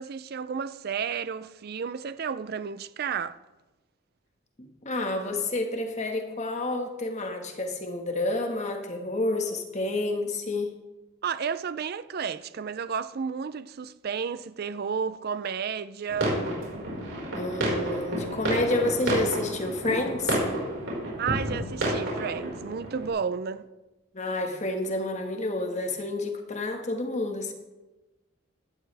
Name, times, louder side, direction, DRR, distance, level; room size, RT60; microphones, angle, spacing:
voice 1, 0.0-3.4 11.2-16.3 17.1-17.2 21.2-23.7, right 6 dB, 50° right, 0.4 m, -32 dB
voice 2, 4.6-10.7 17.3-20.4 24.1-27.5, left 2 dB, 35° left, 1.5 m, -29 dB
sound 1, 16.1-23.1, right 1 dB, 70° right, 4.9 m, -30 dB
16.0 x 11.5 x 3.4 m
head